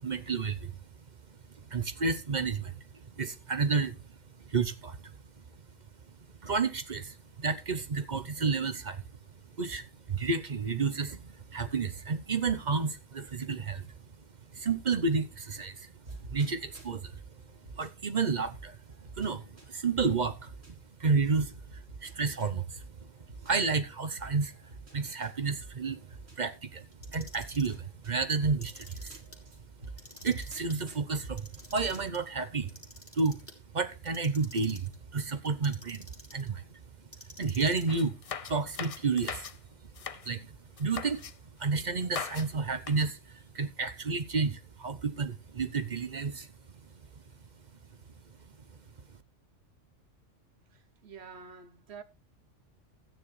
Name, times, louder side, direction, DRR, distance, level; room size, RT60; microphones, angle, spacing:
voice 1, 0.0-0.7 1.7-2.8 3.2-3.9 4.4-5.0 6.4-9.0 9.6-13.9 14.5-15.9 16.3-17.1 17.8-18.8 19.2-20.5 21.0-22.8 23.4-24.5 24.9-26.0 26.4-26.9 27.1-29.2 30.2-32.7 33.1-33.4 33.7-36.1 36.3-36.6 37.4-38.2 38.5-39.5 40.3-40.5 40.8-41.2 41.6-46.5, right 4 dB, 40° right, 0.8 m, -31 dB
sound 1, 16.0-17.9 18.5-20.7 21.3-23.5 24.2-26.4 27.0-32.0, right 3 dB, 80° right, 4.6 m, -48 dB
Clock, 26.9-27.8 28.5-29.4 29.8-30.8 31.2-32.2 32.7-33.6 34.0-35.0 35.4-36.5 37.1-38.0 38.7-39.3, left 1 dB, 10° left, 2.3 m, -50 dB
sound 2, 37.9-39.6 39.9-40.3 40.8-41.3 42.0-42.5 42.8-43.1, left 6 dB, 50° left, 0.4 m, -40 dB
voice 2, 50.7-52.0, right 5 dB, 60° right, 1.2 m, -48 dB
13.5 x 9.2 x 3.2 m
omnidirectional pair, 1.3 m